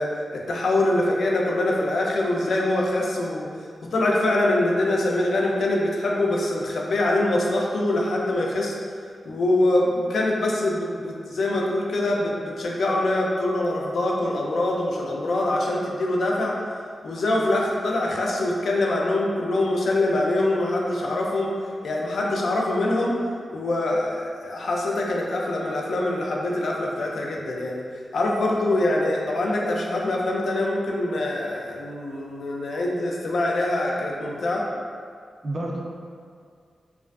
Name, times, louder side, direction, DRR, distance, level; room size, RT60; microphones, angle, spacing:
voice 1, 0.0-3.5 3.9-8.7 9.3-16.5 17.0-21.5 21.8-23.1 23.5-27.8 28.1-34.6, left 1 dB, 70° left, -2 dB, 0.3 m, -24 dB
voice 2, 35.4-35.8, right 1 dB, 45° right, -2 dB, 0.3 m, -31 dB
2.4 x 2.3 x 2.2 m, 2.1 s
wide cardioid pair, 135°, 0 cm